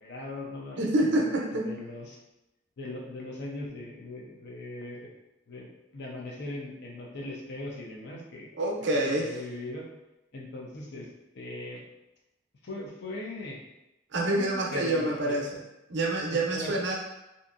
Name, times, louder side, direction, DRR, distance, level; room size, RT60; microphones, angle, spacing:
voice 1, 0.0-0.8 1.2-2.2 2.8-5.1 5.5-5.7 5.9-8.5 8.9-9.9 10.3-11.1 11.3-11.8 12.6-13.6 14.3-15.5 16.3-16.7, left 2 dB, 60° left, -1 dB, 0.6 m, -39 dB
voice 2, 0.8-1.7 8.5-9.3 14.1-15.6 15.9-16.9, right 1 dB, 65° right, -1 dB, 0.6 m, -27 dB
2.8 x 2.5 x 2.5 m, 0.97 s
head